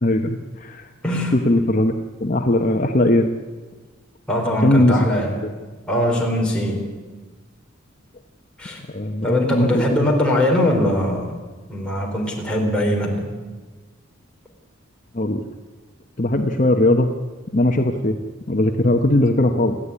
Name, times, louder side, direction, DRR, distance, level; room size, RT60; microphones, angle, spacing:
voice 1, 0.0-0.9 1.3-1.9 2.2-3.3 4.6-5.0 5.4-5.5 8.9-9.8 15.1-15.4 16.2-17.1 17.5-18.2 18.5-19.8, left 1 dB, 40° left, 4 dB, 0.9 m, -19 dB
voice 2, 1.0-1.3 4.3-5.4 5.9-6.8 8.6-8.8 9.2-11.3 11.7-13.3, left 1 dB, 5° left, -2 dB, 4.0 m, -21 dB
28.5 x 9.9 x 9.8 m, 1.3 s
head